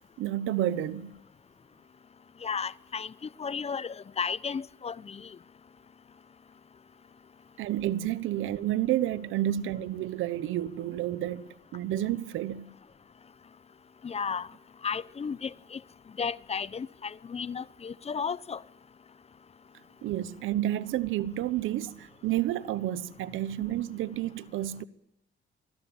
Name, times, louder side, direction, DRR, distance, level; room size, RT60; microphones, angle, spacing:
voice 1, 0.2-1.2 7.6-12.7 20.0-24.8, right 13 dB, 90° right, 1.2 m, -30 dB
voice 2, 2.4-3.1 3.4-5.2 14.0-14.5 14.8-15.8 16.2-18.6, left 6 dB, 30° left, 0.7 m, -33 dB
24.5 x 16.5 x 8.9 m
cardioid pair, 90°, 20 cm